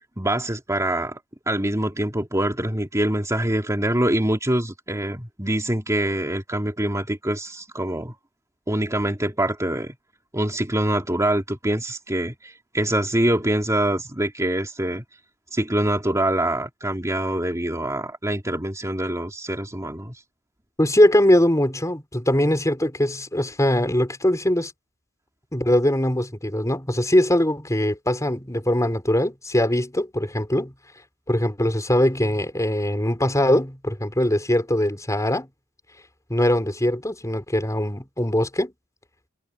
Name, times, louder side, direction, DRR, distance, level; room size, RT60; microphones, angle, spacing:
voice 1, 0.2-1.2 1.5-8.1 8.7-9.9 10.3-15.0 15.5-20.2, right 1 dB, 15° right, 3.1 m, -24 dB
voice 2, 20.8-24.7 25.5-30.7 31.3-35.5 36.3-38.7, left 1 dB, 15° left, 5.3 m, -21 dB
head